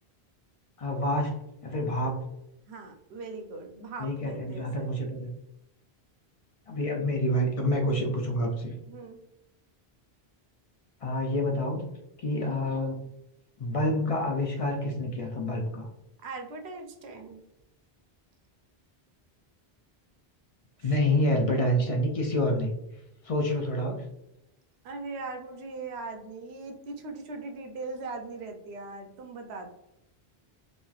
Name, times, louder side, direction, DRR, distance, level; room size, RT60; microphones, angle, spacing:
voice 1, 0.8-2.2 4.0-5.3 6.7-8.7 11.0-11.8 12.2-13.1 13.6-15.9 20.8-22.7 23.2-24.1, left 1 dB, 50° left, 2 dB, 0.4 m, -28 dB
voice 2, 2.7-4.9 8.9-9.2 16.2-17.4 20.8-21.1 24.8-29.7, right 3 dB, 85° right, 4 dB, 0.9 m, -40 dB
3.1 x 2.7 x 2.3 m, 0.84 s
omnidirectional pair, 1.1 m